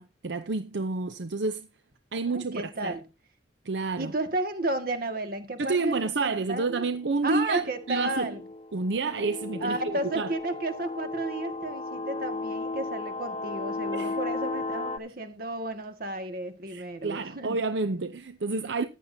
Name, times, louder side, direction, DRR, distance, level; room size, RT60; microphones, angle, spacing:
voice 1, 0.0-1.7 2.1-3.0 3.6-4.1 5.6-8.3 8.7-10.3 13.9-14.2 16.7-18.8, right 3 dB, 75° right, 0.7 m, -29 dB
voice 2, 2.3-3.0 4.0-6.9 7.2-8.4 9.6-17.6, right 2 dB, 55° right, 1.9 m, -33 dB
sound 1, 7.6-15.0, left 3 dB, 30° left, 0.9 m, -35 dB
14.5 x 10.5 x 2.8 m
head